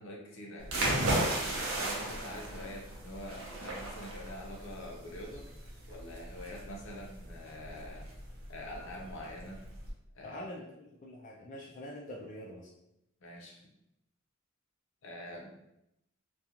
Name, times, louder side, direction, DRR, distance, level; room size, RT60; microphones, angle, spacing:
voice 1, 0.0-5.5 5.9-8.1 8.5-9.6 10.1-10.4 13.2-13.6 15.0-15.5, left 1 dB, 70° left, -2 dB, 0.7 m, -45 dB
sound 1, 0.6-9.9, right 1 dB, 85° right, 0.6 m, -35 dB
voice 2, 10.2-12.7, left 1 dB, 40° left, -3 dB, 0.3 m, -45 dB
2.4 x 2.2 x 2.8 m, 0.83 s
head